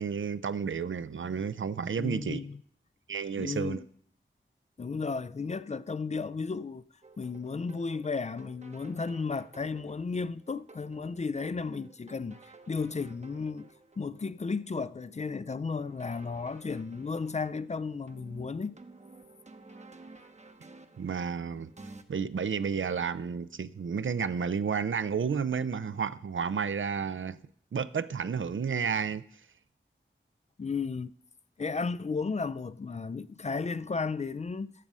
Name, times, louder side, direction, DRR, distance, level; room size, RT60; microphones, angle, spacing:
voice 1, 0.0-2.4 3.1-3.8 21.0-21.7 22.1-27.4 27.7-29.2, right 6 dB, 75° right, 0.5 m, -31 dB
voice 2, 2.0-2.6 3.4-3.9 4.8-6.9 7.2-18.8 30.6-31.1 31.6-34.7, left 4 dB, 35° left, 0.4 m, -34 dB
sound 1, 7.0-22.0, right 3 dB, 35° right, 0.8 m, -54 dB
14.0 x 6.2 x 5.4 m
wide cardioid pair, 50°, 20 cm